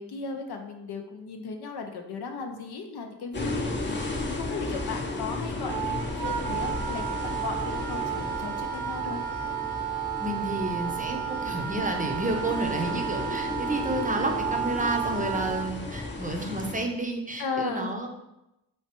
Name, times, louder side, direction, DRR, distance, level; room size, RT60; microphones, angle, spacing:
voice 1, 0.0-4.0 4.4-9.2 17.4-17.9, left 4 dB, 70° left, 4 dB, 0.6 m, -36 dB
sound 1, 3.3-16.8, left 2 dB, 25° left, 0.7 m, -34 dB
Wind instrument woodwind instrument, 5.7-15.7, right 9 dB, 70° right, 0.6 m, -32 dB
voice 2, 10.2-18.1, right 2 dB, 20° right, 2 dB, 0.6 m, -30 dB
3.1 x 3.1 x 2.9 m, 0.89 s
cardioid pair, 55°, 41 cm